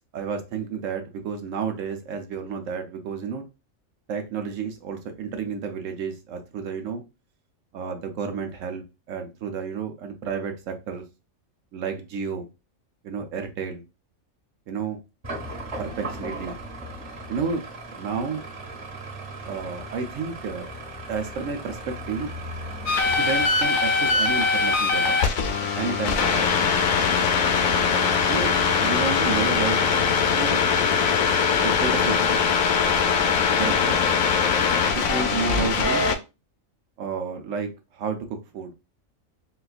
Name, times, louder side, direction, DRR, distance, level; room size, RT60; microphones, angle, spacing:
voice 1, 0.1-3.4 4.1-7.0 7.7-11.0 11.7-12.5 13.0-13.8 14.7-15.0 15.8-16.5 17.3-17.6 17.9-18.4 19.4-20.7 21.1-22.3 23.2-25.2 25.8-26.5 28.3-28.5 28.8-29.8 30.3-30.6 31.6-32.4 33.6-34.2 34.9-36.1 37.0-38.2 38.5-38.7, right 5 dB, 75° right, 5 dB, 1.0 m, -31 dB
sound 1, 15.2-26.7, right 1 dB, 35° right, 1.3 m, -38 dB
sound 2, 22.9-36.1, left 5 dB, 80° left, 1.0 m, -21 dB
4.3 x 2.3 x 2.3 m, 0.27 s
omnidirectional pair, 1.4 m